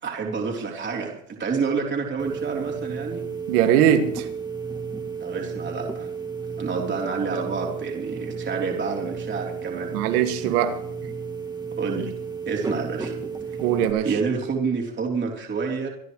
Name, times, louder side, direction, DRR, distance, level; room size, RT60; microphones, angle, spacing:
voice 1, 0.0-3.3 5.2-6.1 6.6-10.0 11.8-12.2 12.4-13.2 14.0-15.9, right 5 dB, 25° right, 3.6 m, -28 dB
sound 1, 2.2-13.9, right 5 dB, 10° right, 1.8 m, -33 dB
voice 2, 3.5-4.3 9.9-10.8 13.6-14.1, right 10 dB, 80° right, 2.2 m, -20 dB
26.5 x 11.5 x 3.2 m
supercardioid pair, 120°, 44 cm